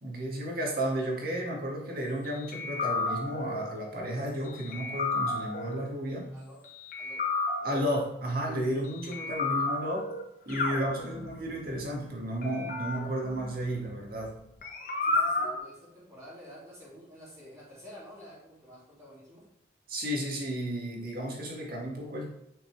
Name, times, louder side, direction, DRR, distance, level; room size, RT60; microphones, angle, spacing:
voice 1, 0.0-6.3 7.6-10.1 10.5-14.4 19.9-22.3, right 1 dB, 50° right, -1 dB, 1.9 m, -33 dB
sound 1, 2.5-3.6 4.7-5.8 6.9-8.0 9.1-10.2 10.5-11.6 12.4-14.3 14.6-15.6, left 2 dB, 45° left, 1.3 m, -32 dB
voice 2, 6.3-6.6 7.0-7.2 7.6-7.7 15.0-19.5, equal, 15° right, -9 dB, 3.4 m, -50 dB
10.5 x 5.7 x 3.3 m, 0.86 s
head